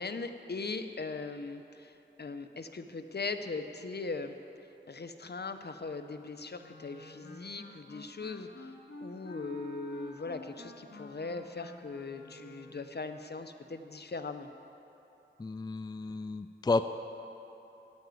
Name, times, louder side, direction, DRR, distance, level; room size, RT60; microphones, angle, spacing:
voice 1, 0.0-4.3 4.9-14.5, left 3 dB, 60° left, 8 dB, 0.7 m, -40 dB
Wind instrument woodwind instrument, 6.6-12.9, left 2 dB, 85° left, 2.0 m, -49 dB
voice 2, 15.4-16.9, left 3 dB, 20° left, 10 dB, 0.4 m, -32 dB
15.0 x 5.1 x 9.3 m, 3.0 s
wide cardioid pair, 55°, 20 cm